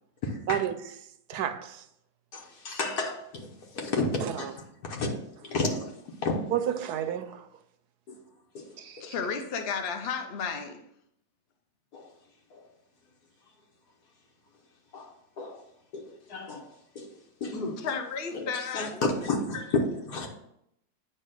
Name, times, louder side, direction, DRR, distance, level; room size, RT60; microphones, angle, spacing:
voice 1, 0.2-0.6 2.3-4.5 4.8-5.1 5.4-5.9 6.2-6.4 8.1-8.2 8.5-8.7 11.9-12.0 12.5-12.6 14.9-15.6 15.9-16.7 16.9-17.1 17.4-17.8 18.3-20.3, left 3 dB, 75° left, 1.6 m, -31 dB
voice 2, 1.3-1.8 4.2-4.5 6.5-7.5 8.8-9.1, right 10 dB, 85° right, 1.2 m, -31 dB
voice 3, 9.0-10.8 17.8-19.0, left 6 dB, 50° left, 0.8 m, -33 dB
9.1 x 3.4 x 6.3 m
omnidirectional pair, 1.7 m